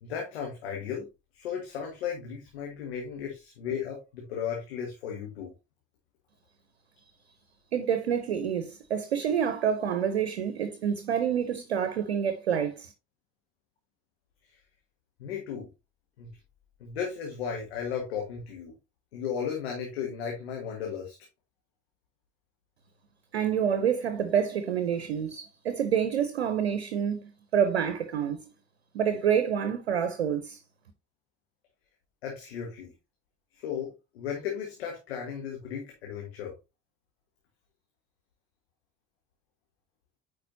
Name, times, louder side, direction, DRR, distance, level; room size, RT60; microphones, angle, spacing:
voice 1, 0.0-1.1 1.3-5.5 15.2-15.7 16.2-16.3 16.8-18.7 19.1-21.1 32.2-32.9 33.6-36.5, left 7 dB, 80° left, 1.5 m, -35 dB
voice 2, 7.7-12.9 23.3-28.5 28.9-30.6, right 8 dB, 85° right, 0.7 m, -28 dB
9.1 x 4.8 x 2.6 m
hypercardioid pair, 55°, 31 cm